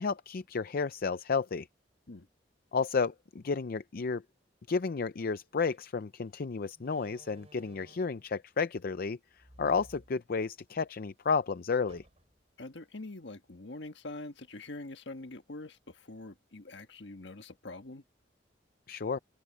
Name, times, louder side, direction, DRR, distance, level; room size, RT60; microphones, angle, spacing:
voice 1, 0.0-1.7 2.7-4.2 4.7-12.0 18.9-19.2, left 5 dB, 55° left, 0.5 m, -32 dB
Slam, 5.7-5.9 6.7-8.3 9.3-10.8 11.1-11.2 11.9-12.5, right 1 dB, 35° right, 4.2 m, -57 dB
voice 2, 12.6-18.0, left 2 dB, 70° left, 1.6 m, -44 dB
head